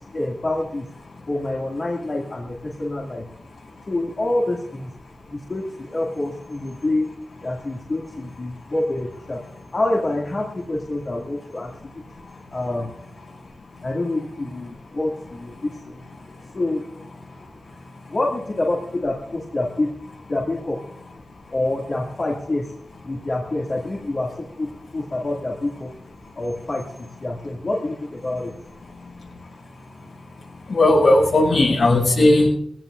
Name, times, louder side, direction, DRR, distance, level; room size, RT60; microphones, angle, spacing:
voice 1, 0.1-0.9 1.3-3.3 3.9-4.9 5.3-7.1 7.4-9.4 9.7-12.0 12.5-13.0 13.8-16.0 16.5-16.8 18.1-19.9 20.3-20.8 21.5-22.7 23.0-25.9 26.3-28.5, left 2 dB, 40° left, -3 dB, 2.5 m, -27 dB
voice 2, 30.7-32.5, left 1 dB, 70° left, -2 dB, 7.7 m, -16 dB
22.5 x 16.5 x 2.6 m, 0.70 s
wide cardioid pair, 110°, 0 cm